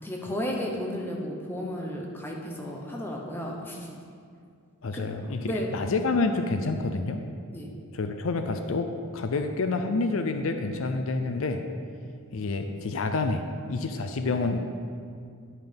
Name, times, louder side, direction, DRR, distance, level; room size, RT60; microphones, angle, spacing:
voice 1, 0.0-3.9 4.9-5.7 7.5-7.7, equal, 10° left, -1 dB, 1.0 m, -33 dB
voice 2, 4.8-7.2 7.9-11.6 12.3-14.6, left 3 dB, 65° left, 6 dB, 0.5 m, -28 dB
9.8 x 5.6 x 5.2 m, 2.3 s
head